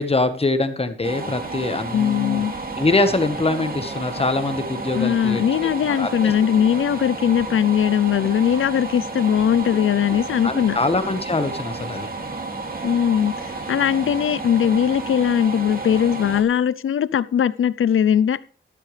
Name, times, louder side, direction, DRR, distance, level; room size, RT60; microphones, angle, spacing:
voice 1, 0.0-2.4 2.8-5.7 6.0-6.3 9.7-9.8 10.1-12.1, left 3 dB, 30° left, 1.4 m, -23 dB
sound 1, 1.0-16.4, right 3 dB, 45° right, 2.6 m, -31 dB
voice 2, 1.9-2.5 4.9-10.8 12.8-13.4 13.7-18.4, left 9 dB, 85° left, 0.6 m, -20 dB
13.0 x 12.0 x 3.4 m
wide cardioid pair, 125°, 21 cm